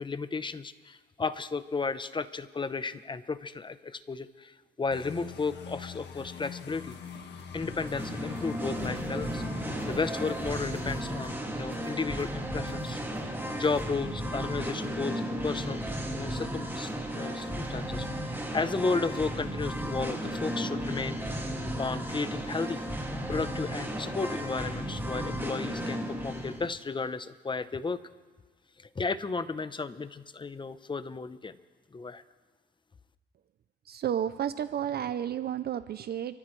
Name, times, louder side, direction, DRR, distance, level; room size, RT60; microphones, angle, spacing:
voice 1, 0.0-7.0 7.5-15.8 16.1-21.4 21.8-22.8 23.3-28.0 28.8-31.6 31.9-32.2, left 4 dB, 25° left, 13 dB, 0.8 m, -34 dB
sound 1, 4.9-11.4, left 8 dB, 60° left, 1.7 m, -44 dB
sound 2, 6.2-13.8, right 5 dB, 80° right, 2.4 m, -53 dB
Singing, 7.5-26.7, equal, 10° right, 2.3 m, -34 dB
voice 2, 33.9-36.4, right 9 dB, 55° right, 13 dB, 0.5 m, -32 dB
29.0 x 14.0 x 3.2 m, 1.4 s
cardioid pair, 90°, 20 cm